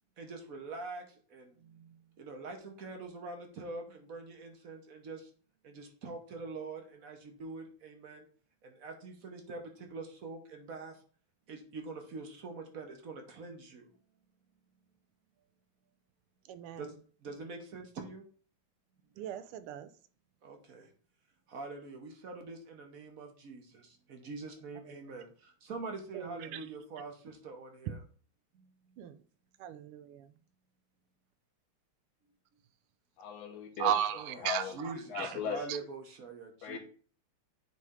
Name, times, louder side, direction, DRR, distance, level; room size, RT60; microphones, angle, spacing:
voice 1, 0.2-1.0 1.3-1.5 1.7-1.8 2.2-5.2 5.6-8.2 8.6-10.9 11.5-13.8 16.8-16.9 17.2-18.2 20.4-20.9 21.5-25.3 25.6-28.0 34.2-36.8, right 3 dB, 50° right, 4 dB, 1.1 m, -44 dB
voice 2, 16.5-16.9 19.2-19.9 24.8-24.9 26.1-26.7 29.0-29.2 29.6-30.3 33.8-35.4 35.7-35.8, right 10 dB, 85° right, 12 dB, 1.5 m, -36 dB
voice 3, 33.2-35.7 36.6-36.8, left 7 dB, 70° left, 2 dB, 2.0 m, -39 dB
9.5 x 3.3 x 3.7 m, 0.43 s
omnidirectional pair, 2.4 m